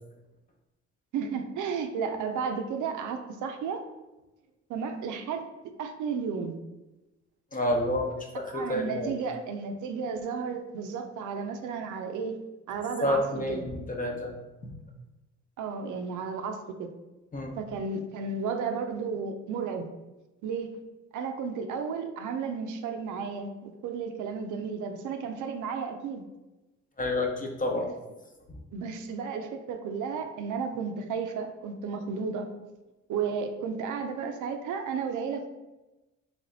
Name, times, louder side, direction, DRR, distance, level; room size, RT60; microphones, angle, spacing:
voice 1, 1.1-3.8 4.7-5.4 5.8-6.6 8.5-13.6 15.6-16.9 17.6-19.9 20.4-20.8 21.1-26.2 28.7-32.5 33.1-35.5, right 5 dB, 80° right, 6 dB, 0.5 m, -33 dB
voice 2, 7.5-9.1 13.0-14.3 14.6-14.7 17.3-17.5 27.0-27.9 28.5-28.6, left 1 dB, 25° left, 2 dB, 0.8 m, -29 dB
3.3 x 3.2 x 3.9 m, 1.0 s
cardioid pair, 90°, 30 cm